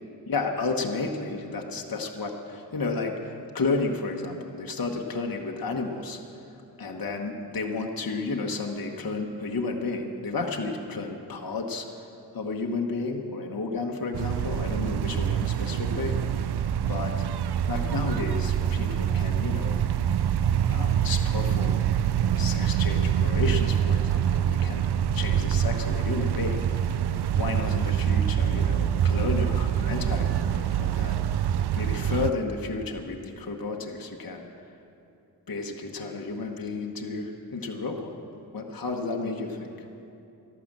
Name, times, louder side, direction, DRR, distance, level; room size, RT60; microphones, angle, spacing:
voice 1, 0.3-6.2 6.8-12.0 12.3-16.5 16.8-17.1 17.7-19.8 20.7-21.9 22.3-24.9 25.1-31.4 31.8-34.5 35.5-38.2 38.5-39.7, left 3 dB, 55° left, 1 dB, 1.3 m, -32 dB
sound 1, 14.1-32.3, right 9 dB, 65° right, 0.5 m, -25 dB
12.5 x 11.5 x 7.4 m, 2.8 s
wide cardioid pair, 70°, 43 cm